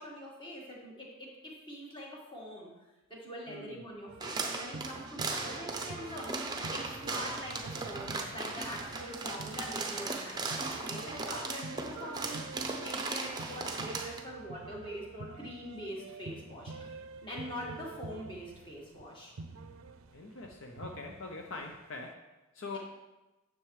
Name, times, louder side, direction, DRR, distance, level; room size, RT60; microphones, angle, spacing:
voice 1, 0.0-2.7 3.1-16.9 17.2-19.3, equal, 25° left, -3 dB, 1.7 m, -44 dB
voice 2, 3.5-3.9 20.1-22.8, left 3 dB, 65° left, 2 dB, 0.7 m, -43 dB
sound 1, 4.1-21.8, right 3 dB, 75° right, 0.5 m, -48 dB
sound 2, 4.2-14.2, right 3 dB, 20° right, 0.6 m, -37 dB
9.9 x 6.9 x 3.2 m, 1.1 s
head